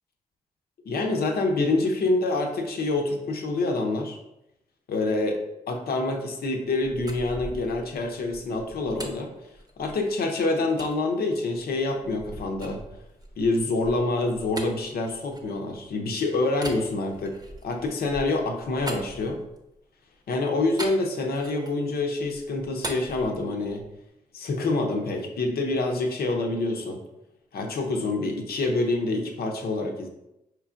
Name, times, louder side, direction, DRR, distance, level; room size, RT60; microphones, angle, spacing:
voice 1, 0.9-4.2 4.9-5.4 5.7-9.3 9.8-12.8 13.4-17.4 17.6-19.4 20.3-23.8 24.3-27.0 27.5-30.1, left 2 dB, 70° left, 3 dB, 0.7 m, -26 dB
sound 1, 6.8-10.2 10.8-11.0 11.5-16.0 16.5-19.8 20.8-21.9 22.2-24.0, right 1 dB, 25° right, 0.8 m, -41 dB
4.5 x 3.2 x 2.4 m, 0.88 s
supercardioid pair, 45°, 17 cm